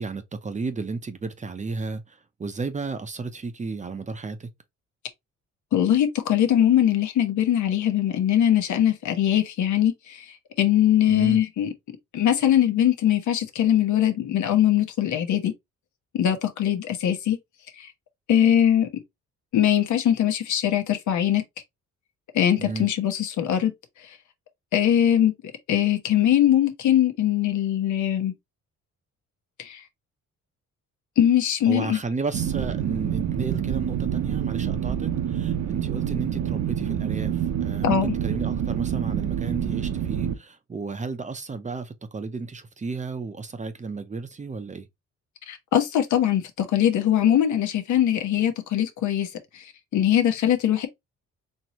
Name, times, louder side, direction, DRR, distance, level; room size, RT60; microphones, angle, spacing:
voice 1, 0.0-4.5 11.1-11.4 22.6-22.9 31.7-44.9, right 4 dB, 25° right, 0.7 m, -33 dB
voice 2, 5.7-10.2 10.6-11.7 12.1-15.5 16.1-17.4 17.8-17.9 18.3-18.9 19.5-21.4 22.3-23.7 24.7-25.3 25.7-28.3 29.6-29.8 31.2-32.0 37.8-38.2 45.5-49.3 49.5-50.9, left 10 dB, 75° left, 1.1 m, -21 dB
sound 1, 32.3-40.3, right 9 dB, 65° right, 0.8 m, -27 dB
4.5 x 2.9 x 3.0 m
cardioid pair, 90°, 30 cm